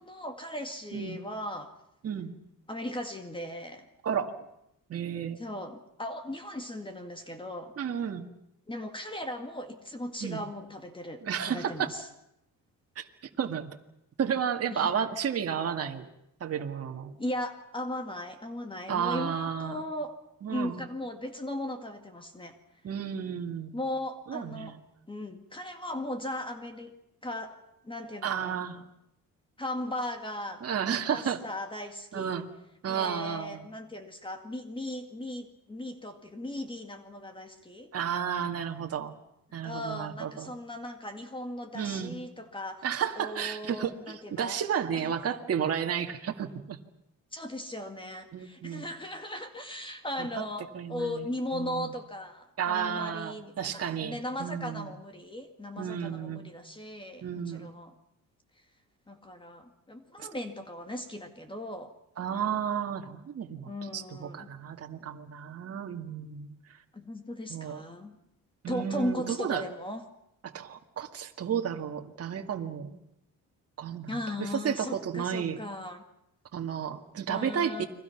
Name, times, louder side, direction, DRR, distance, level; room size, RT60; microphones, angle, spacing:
voice 1, 0.0-1.7 2.7-3.9 5.4-7.7 8.7-12.1 14.7-14.9 17.2-20.1 20.5-22.6 23.7-24.8 25.1-26.9 27.2-27.6 27.8-28.6 29.6-30.7 31.1-32.4 32.8-37.9 39.6-42.9 43.2-44.6 44.9-45.1 47.3-57.9 59.1-61.9 63.7-64.5 66.9-68.2 68.7-70.0 74.1-76.0 77.3-77.9, left 1 dB, 15° left, 6 dB, 2.2 m, -37 dB
voice 2, 4.0-4.4 4.9-5.4 7.8-8.3 10.2-10.4 11.2-11.9 13.0-13.1 13.4-13.7 14.2-16.1 16.4-17.1 18.9-19.8 20.4-20.8 22.8-23.8 24.3-24.8 28.2-28.8 30.6-31.4 32.1-32.5 32.8-33.7 37.9-39.1 39.5-40.5 41.7-42.2 42.8-46.8 48.3-48.9 50.2-50.3 50.7-51.3 51.5-51.9 52.6-55.0 55.8-56.5 57.2-57.7 60.2-60.3 62.2-66.5 67.5-67.8 68.6-69.6 70.4-73.0 73.8-75.6 76.5-77.9, right 8 dB, 45° right, 3 dB, 2.1 m, -32 dB
30.0 x 23.0 x 5.9 m, 0.80 s
cardioid pair, 120°, 34 cm